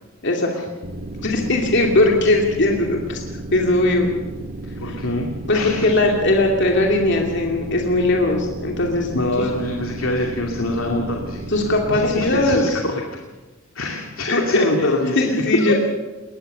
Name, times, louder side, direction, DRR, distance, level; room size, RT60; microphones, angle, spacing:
sound 1, 0.8-12.5, right 2 dB, 50° right, 1.8 m, -33 dB
voice 1, 1.2-3.2 3.5-4.1 4.9-5.0 5.5-9.2 11.5-12.8 14.3-14.7 15.2-15.7, left 2 dB, 60° left, 1 dB, 2.6 m, -19 dB
voice 2, 4.8-5.9 9.1-11.4 11.9-13.0 13.7-15.7, left 1 dB, 85° left, 1 dB, 2.6 m, -24 dB
21.0 x 20.0 x 6.8 m, 1.2 s
head